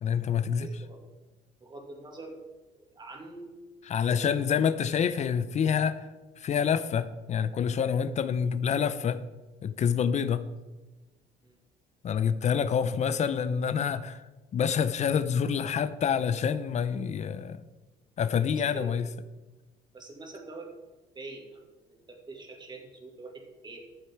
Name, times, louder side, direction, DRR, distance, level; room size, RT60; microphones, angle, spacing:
voice 1, 0.0-0.7 3.9-6.1 6.4-9.2 9.6-10.4 12.0-14.2 14.5-17.6 18.2-19.1, left 7 dB, 45° left, 14 dB, 0.6 m, -27 dB
voice 2, 0.6-1.0 1.6-2.4 2.7-3.5 4.0-4.6 7.8-7.9 11.4-11.6 18.5-18.9 19.9-20.7 21.1-23.8, right 2 dB, 25° right, 2 dB, 2.3 m, -45 dB
12.5 x 7.2 x 4.5 m, 1.2 s
cardioid pair, 110°, 17 cm